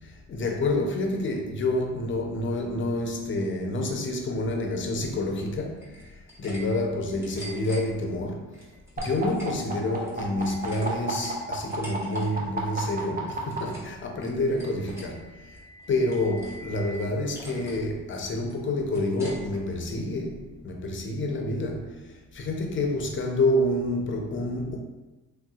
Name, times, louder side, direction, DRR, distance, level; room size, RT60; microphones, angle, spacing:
voice 1, 0.0-8.6 9.0-15.6 15.9-24.8, left 1 dB, 40° left, 0.6 m, -28 dB
sound 1, 5.8-6.6 6.9-7.8 8.5-9.5 9.9-12.3 12.5-12.9 13.2-13.9 14.2-15.1 15.5-16.6 16.9-17.0 17.3-17.8 18.1-19.6, equal, 10° right, 1.1 m, -44 dB
sound 2, 9.0-13.6 14.7-17.0, right 3 dB, 30° right, 0.7 m, -36 dB
3.3 x 2.6 x 2.3 m
cardioid pair, 90°, 30 cm